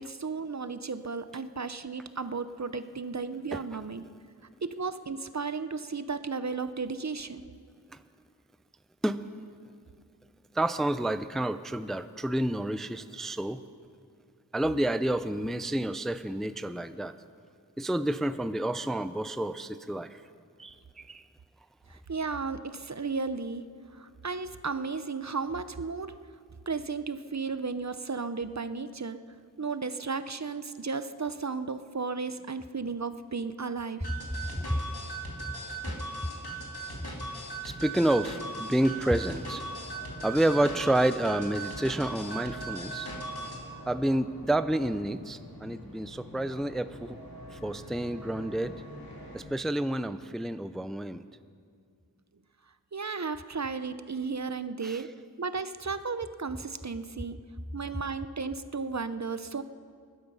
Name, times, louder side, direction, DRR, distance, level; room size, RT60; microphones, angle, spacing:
voice 1, 0.0-4.1 4.6-7.4 21.9-23.7 23.9-26.2 26.7-29.2 29.6-34.1 52.9-55.1 55.4-57.4 57.7-59.6, right 4 dB, 50° right, 12 dB, 0.6 m, -34 dB
voice 2, 10.5-13.6 14.5-17.1 17.8-20.2 20.6-21.2 34.6-34.7 37.6-39.6 40.2-43.1 43.9-47.2 47.5-48.7 49.3-51.3 54.8-55.0, right 1 dB, ahead, 12 dB, 0.4 m, -29 dB
sound 1, 34.0-43.6, right 2 dB, 90° left, 2.2 m, -38 dB
sound 2, 38.4-49.4, equal, 70° left, 3.1 m, -46 dB
19.5 x 12.0 x 5.5 m, 2.2 s
wide cardioid pair, 40°, 37 cm